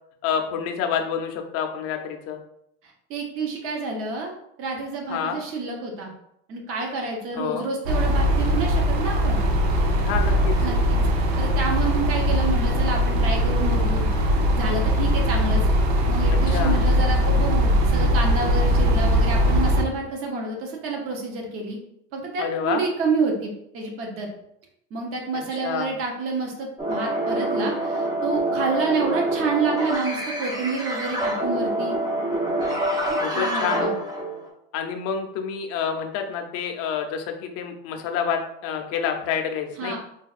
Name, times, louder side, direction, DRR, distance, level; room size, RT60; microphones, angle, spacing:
voice 1, 0.2-2.4 5.1-5.4 7.3-7.7 10.0-10.5 16.3-16.8 22.4-22.8 25.6-25.9 33.2-33.9 34.7-40.0, left 7 dB, 45° left, 4 dB, 0.5 m, -28 dB
voice 2, 3.1-4.3 4.6-6.1 6.5-9.4 10.6-11.0 11.4-14.1 14.5-15.6 16.1-21.8 22.1-24.3 24.9-32.0 33.1-34.0 39.8-40.0, right 3 dB, 40° right, 1 dB, 0.8 m, -28 dB
sound 1, 7.8-19.8, equal, 85° right, 0.7 m, -20 dB
sound 2, 26.8-34.5, right 1 dB, 10° right, 0.4 m, -26 dB
4.0 x 2.2 x 2.4 m, 0.75 s
supercardioid pair, 130°, 33 cm